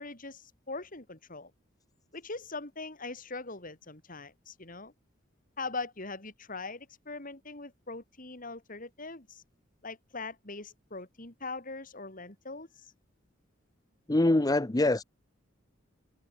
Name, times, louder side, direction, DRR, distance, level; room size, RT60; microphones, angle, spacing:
voice 1, 0.0-1.5 2.1-4.9 5.6-9.4 9.8-12.9, left 3 dB, 45° left, 4.7 m, -41 dB
voice 2, 14.1-15.0, left 2 dB, 20° left, 0.6 m, -24 dB
head